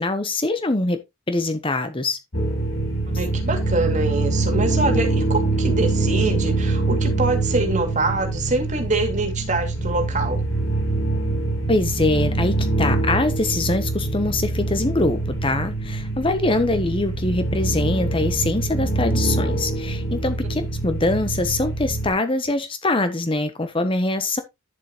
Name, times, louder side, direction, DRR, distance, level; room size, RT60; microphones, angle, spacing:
voice 1, 0.0-2.2 11.7-24.4, left 2 dB, 25° left, 0.9 m, -23 dB
sound 1, 2.3-22.1, right 2 dB, 80° left, 5.4 m, -24 dB
voice 2, 3.2-10.4, right 2 dB, 35° right, 2.5 m, -24 dB
10.5 x 7.4 x 3.0 m
head